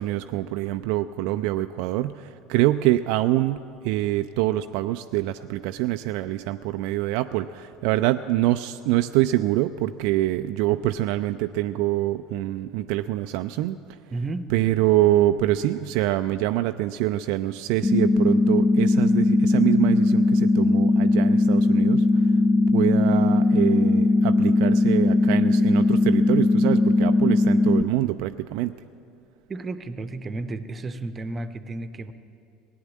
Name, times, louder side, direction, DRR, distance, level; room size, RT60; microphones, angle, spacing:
voice 1, 0.0-13.8 14.5-22.1 22.7-28.8, right 15 dB, 55° right, 9 dB, 0.3 m, -25 dB
voice 2, 14.1-14.5 29.5-32.1, right 2 dB, 25° right, 11 dB, 0.8 m, -32 dB
sound 1, 17.8-27.8, left 2 dB, 20° left, 0.7 m, -19 dB
17.5 x 9.4 x 7.4 m, 2.5 s
figure-of-eight pair, 65°, 0 cm